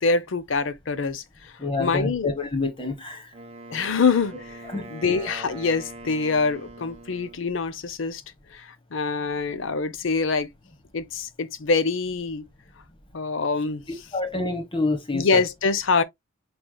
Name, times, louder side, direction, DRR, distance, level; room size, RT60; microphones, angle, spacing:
voice 1, 0.0-1.5 1.8-2.3 3.7-4.6 4.9-8.2 8.5-10.5 10.9-12.5 13.1-13.9 15.1-16.0, left 4 dB, 65° left, 0.6 m, -25 dB
voice 2, 1.6-3.3 4.7-5.1 14.1-15.4, left 3 dB, 25° left, 1.3 m, -27 dB
Wind instrument woodwind instrument, 3.3-7.5, right 2 dB, 30° right, 1.0 m, -42 dB
6.0 x 3.3 x 2.3 m
head